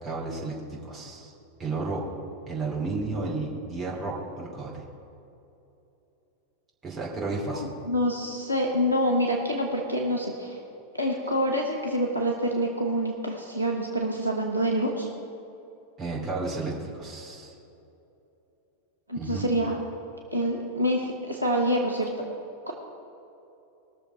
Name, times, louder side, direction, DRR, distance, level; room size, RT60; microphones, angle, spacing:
voice 1, 0.0-1.3 1.6-2.0 2.5-4.8 6.8-7.7 16.0-17.5 19.1-19.5, right 3 dB, 25° right, -4 dB, 2.9 m, -32 dB
voice 2, 7.5-10.6 10.9-15.1 19.1-19.8 20.3-22.2 22.7-22.8, equal, 85° right, -1 dB, 1.2 m, -26 dB
20.0 x 6.9 x 4.7 m, 2.9 s
figure-of-eight pair, 90°, 0 cm